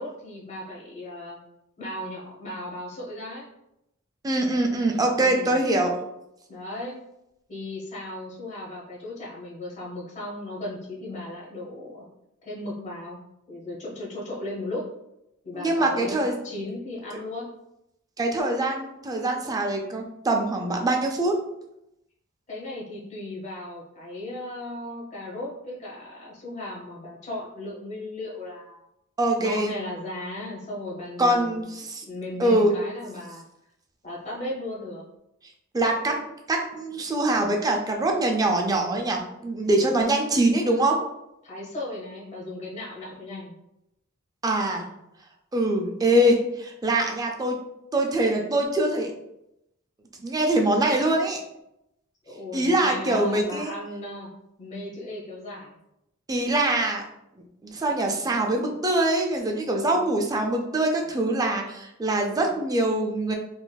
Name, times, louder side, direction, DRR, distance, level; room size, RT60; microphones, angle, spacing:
voice 1, 0.0-1.4 1.8-3.5 5.2-5.6 6.5-7.0 7.5-12.0 12.4-13.2 13.5-14.8 15.4-17.5 22.5-28.8 29.4-31.6 32.1-33.4 34.0-35.0 41.4-43.5 52.2-54.3 54.6-55.8, left 1 dB, 35° left, -5 dB, 1.0 m, -36 dB
voice 2, 4.2-5.9 15.5-16.3 18.2-21.3 29.2-29.7 31.2-32.0 32.4-32.7 35.7-41.0 44.4-44.9 45.5-47.6 47.9-49.1 50.2-51.4 52.5-53.7 56.3-57.0 57.6-63.3, right 1 dB, 15° right, 2 dB, 0.4 m, -23 dB
3.9 x 2.5 x 2.2 m, 0.85 s
head